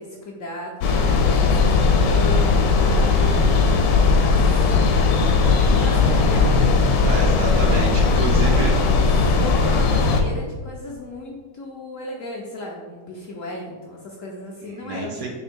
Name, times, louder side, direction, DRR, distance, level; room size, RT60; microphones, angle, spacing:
voice 1, 0.0-3.4 4.2-4.6 5.6-6.7 8.4-15.3, left 1 dB, 65° left, -3 dB, 0.8 m, -35 dB
sound 1, 0.8-10.2, left 4 dB, 80° left, 1.2 m, -18 dB
voice 2, 7.0-8.7 14.7-15.3, right 2 dB, 70° right, 1 dB, 0.9 m, -28 dB
3.7 x 3.0 x 4.3 m, 1.5 s
omnidirectional pair, 1.8 m